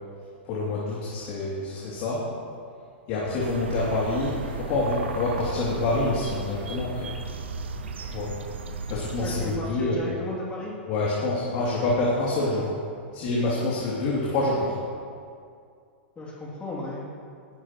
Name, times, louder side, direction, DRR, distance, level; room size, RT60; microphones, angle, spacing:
voice 1, 0.5-2.2 3.1-7.1 8.0-8.3 8.9-10.1 10.9-12.7 13.1-14.7, left 2 dB, 50° left, -6 dB, 2.8 m, -27 dB
sound 1, 3.4-9.6, right 3 dB, 80° right, 1.1 m, -35 dB
voice 2, 9.2-10.7 16.2-17.0, left 1 dB, 20° left, -6 dB, 2.8 m, -34 dB
18.5 x 12.0 x 3.1 m, 2.3 s
hypercardioid pair, 110°, 6 cm